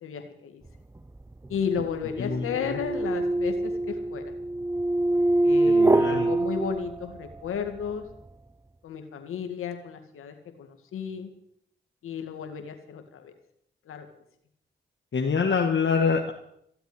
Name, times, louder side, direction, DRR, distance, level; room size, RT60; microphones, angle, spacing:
voice 1, 0.0-0.6 1.5-4.3 5.4-8.0 8.8-11.3 12.0-13.3 13.9-14.1, left 6 dB, 85° left, 6 dB, 2.1 m, -33 dB
sound 1, 1.0-7.5, right 2 dB, 15° right, 0.6 m, -25 dB
voice 2, 2.2-2.8 5.7-6.3 15.1-16.3, left 5 dB, 65° left, 1 dB, 1.8 m, -26 dB
15.5 x 8.0 x 9.9 m, 0.72 s
supercardioid pair, 40°, 21 cm